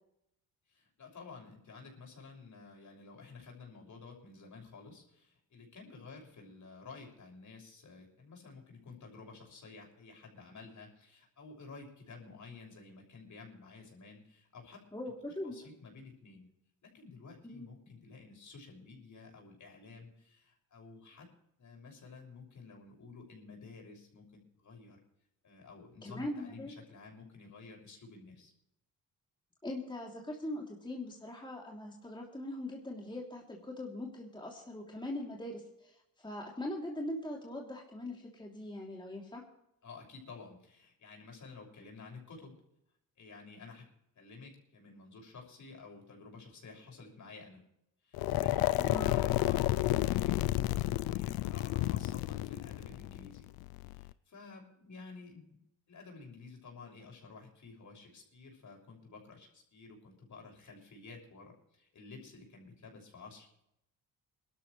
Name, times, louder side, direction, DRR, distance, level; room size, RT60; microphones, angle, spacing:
voice 1, 0.7-14.8 15.4-16.5 16.8-21.3 21.6-25.0 25.4-28.5 39.8-42.6 43.2-43.8 44.1-47.6 48.0-53.5 53.9-55.6 55.9-63.6, left 4 dB, 55° left, 1 dB, 6.3 m, -52 dB
voice 2, 14.9-15.6 17.4-17.7 26.0-26.7 29.6-39.4 48.8-49.2, left 1 dB, 15° left, -1 dB, 3.1 m, -41 dB
sound 1, 48.1-54.1, left 16 dB, 80° left, 0.5 m, -31 dB
21.5 x 12.5 x 3.2 m, 0.79 s
supercardioid pair, 65°, 36 cm